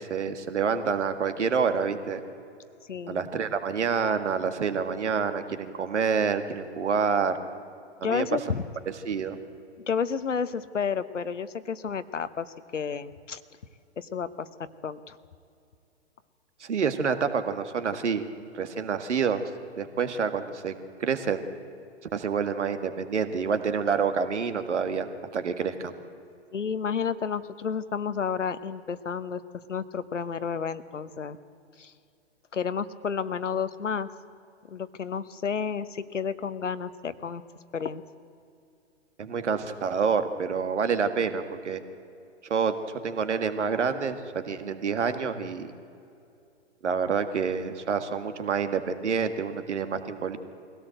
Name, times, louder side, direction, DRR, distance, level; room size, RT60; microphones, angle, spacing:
voice 1, 0.0-2.2 3.1-7.4 8.0-8.3 9.1-9.4 16.6-18.3 18.5-19.5 19.8-20.7 21.0-21.4 22.1-25.1 25.3-25.9 39.2-41.8 42.4-42.8 43.0-44.2 44.4-45.7 46.8-50.4, right 6 dB, 75° right, 9 dB, 1.9 m, -27 dB
voice 2, 2.9-3.3 8.0-8.6 9.9-13.4 14.0-14.5 14.8-15.2 26.5-29.4 29.7-31.4 31.8-31.9 32.5-34.1 34.7-37.4 37.7-38.0, left 6 dB, 85° left, 13 dB, 1.1 m, -31 dB
22.5 x 17.0 x 7.8 m, 2.6 s
figure-of-eight pair, 120°, 36 cm